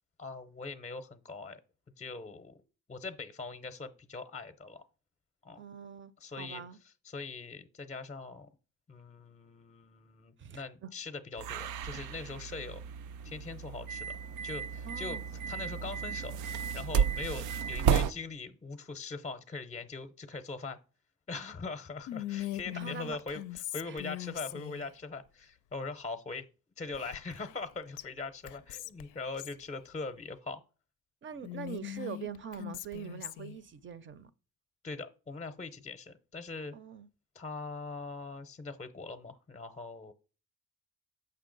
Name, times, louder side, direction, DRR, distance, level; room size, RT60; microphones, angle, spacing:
voice 1, 0.2-1.6 2.0-2.6 2.9-4.8 5.4-5.6 6.2-6.6 7.0-8.5 8.9-12.8 13.2-15.2 15.5-16.4 16.7-20.8 21.3-26.5 26.8-30.6 34.8-36.7 37.3-40.1, left 3 dB, 25° left, 0.6 m, -41 dB
voice 2, 5.6-6.8 10.4-10.9 14.8-15.2 22.7-23.2 23.8-24.0 31.2-34.3 36.7-37.1, right 8 dB, 40° right, 0.5 m, -43 dB
sound 1, 11.4-18.1, right 7 dB, 85° right, 0.5 m, -33 dB
Whispering, 22.1-24.9 26.9-27.7 28.0-28.1 28.5-29.6 31.4-33.6, left 14 dB, 90° left, 0.5 m, -41 dB
6.9 x 5.5 x 3.8 m
cardioid pair, 90°, 30 cm